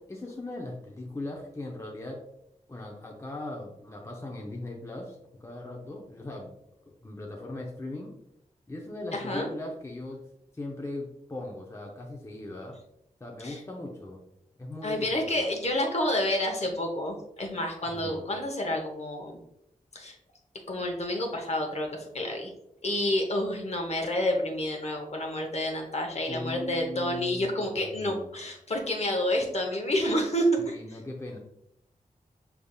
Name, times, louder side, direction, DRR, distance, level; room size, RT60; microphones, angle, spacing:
voice 1, 0.1-2.2 2.7-6.5 7.0-8.1 8.7-10.2 10.5-12.8 13.2-14.2 14.6-15.4 17.8-18.2 26.3-28.4 30.6-31.4, left 2 dB, 20° left, 0 dB, 0.6 m, -39 dB
voice 2, 9.1-9.5 13.4-13.6 14.8-19.4 19.9-20.1 20.7-21.9 22.1-22.5 22.8-30.7, left 1 dB, 50° left, 2 dB, 0.9 m, -29 dB
5.2 x 3.4 x 2.3 m, 0.78 s
wide cardioid pair, 80°, 14 cm